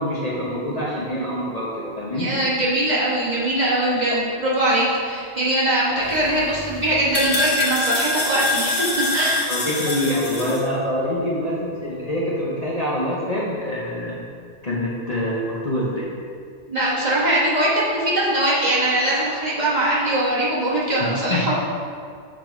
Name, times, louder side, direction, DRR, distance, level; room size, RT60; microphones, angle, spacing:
voice 1, 0.0-2.3 4.1-4.2 9.5-14.2 14.6-16.1 21.0-21.4, equal, 35° left, -7 dB, 0.9 m, -25 dB
voice 2, 2.1-9.5 16.7-21.5, right 1 dB, 35° right, -8 dB, 1.4 m, -21 dB
sound 1, 6.0-10.6, left 2 dB, 75° left, 1.7 m, -25 dB
7.0 x 3.9 x 4.5 m, 2.2 s
omnidirectional pair, 1.3 m